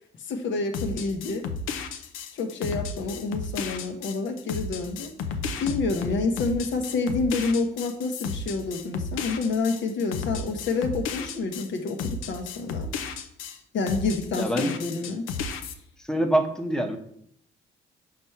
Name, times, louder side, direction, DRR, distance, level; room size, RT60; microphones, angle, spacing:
voice 1, 0.2-1.5 2.3-5.1 5.6-12.9 13.7-15.3, left 3 dB, 70° left, 5 dB, 1.0 m, -28 dB
sound 1, 0.7-13.6 13.9-15.7, left 5 dB, 90° left, 0.6 m, -33 dB
voice 2, 14.3-14.7 16.0-17.0, right 1 dB, 5° left, 4 dB, 0.8 m, -25 dB
5.9 x 3.4 x 5.6 m, 0.66 s
cardioid pair, 90°, 20 cm